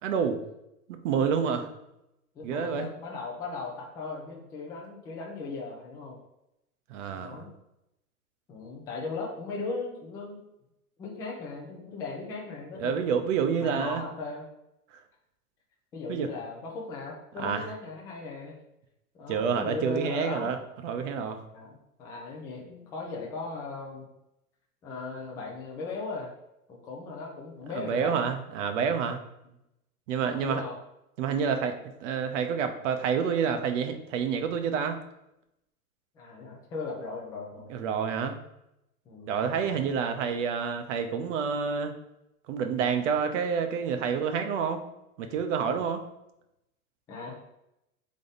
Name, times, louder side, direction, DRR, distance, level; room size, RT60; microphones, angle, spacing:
voice 1, 0.0-0.4 0.9-1.7 2.4-2.9 6.9-7.4 12.8-14.0 16.1-16.3 17.4-17.6 19.3-20.6 20.8-21.4 27.7-29.2 30.1-30.6 31.2-31.7 32.0-35.0 37.7-38.4 39.3-42.0 42.5-44.8 45.2-46.0, right 6 dB, 55° right, 7 dB, 0.8 m, -28 dB
voice 2, 1.4-1.7 2.3-6.2 7.1-7.5 8.5-10.4 11.0-13.2 13.6-14.4 15.9-18.5 19.1-20.5 21.5-24.1 24.8-26.3 26.7-28.2 29.4-29.5 30.3-30.8 36.2-37.7 39.1-39.8 47.1-47.4, left 3 dB, 10° left, -2 dB, 0.3 m, -38 dB
3.7 x 3.6 x 4.0 m, 0.85 s
hypercardioid pair, 130°, 45 cm